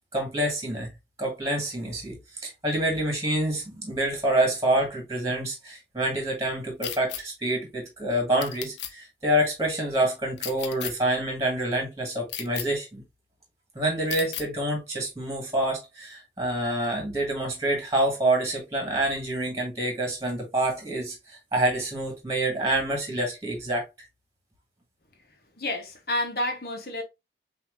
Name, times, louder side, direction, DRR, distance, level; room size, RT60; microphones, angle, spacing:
voice 1, 0.1-0.9 1.2-13.0 13.8-23.8, right 1 dB, 20° right, 1.7 m, -27 dB
sound 1, 6.8-7.2 8.4-8.9 10.4-10.9 12.3-12.7 14.1-14.5, left 11 dB, 85° left, 0.6 m, -34 dB
voice 2, 25.5-27.0, left 1 dB, 55° left, 1.2 m, -29 dB
5.8 x 2.8 x 2.6 m
head